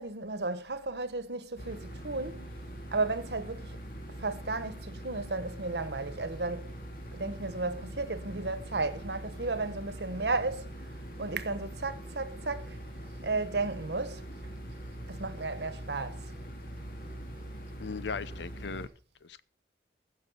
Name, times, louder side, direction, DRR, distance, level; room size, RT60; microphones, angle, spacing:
voice 1, 0.0-2.6 2.9-3.8 4.2-6.7 7.1-10.7 11.2-12.8 13.2-14.2 15.1-16.3, right 3 dB, 70° right, 1.2 m, -34 dB
sound 1, 1.6-18.9, right 1 dB, 50° left, 3.1 m, -43 dB
voice 2, 17.8-18.9 19.2-19.4, left 5 dB, 85° left, 0.7 m, -38 dB
15.0 x 6.6 x 5.6 m
head